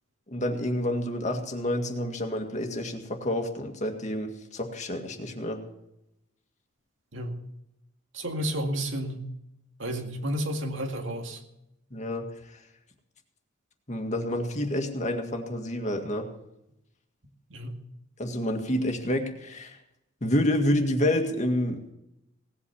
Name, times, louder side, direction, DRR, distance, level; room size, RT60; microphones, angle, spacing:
voice 1, 0.3-5.6 11.9-12.3 13.9-16.3 18.2-19.8 20.2-21.9, left 1 dB, 40° left, 4 dB, 1.9 m, -28 dB
voice 2, 8.1-9.3 9.8-11.4 17.5-17.8, right 1 dB, 90° right, 4 dB, 2.1 m, -31 dB
18.0 x 8.6 x 7.1 m, 0.84 s
head